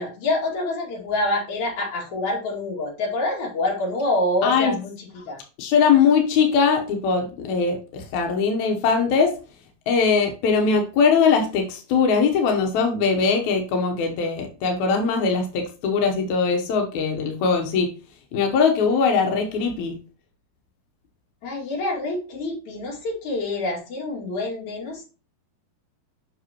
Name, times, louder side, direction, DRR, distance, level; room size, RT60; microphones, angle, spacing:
voice 1, 0.0-5.4 21.4-25.0, left 2 dB, 50° left, -2 dB, 3.2 m, -26 dB
voice 2, 4.4-4.7 5.6-9.3 9.9-17.9 18.3-20.0, left 5 dB, 75° left, 3 dB, 1.7 m, -21 dB
7.8 x 5.9 x 2.9 m, 0.34 s
omnidirectional pair, 4.6 m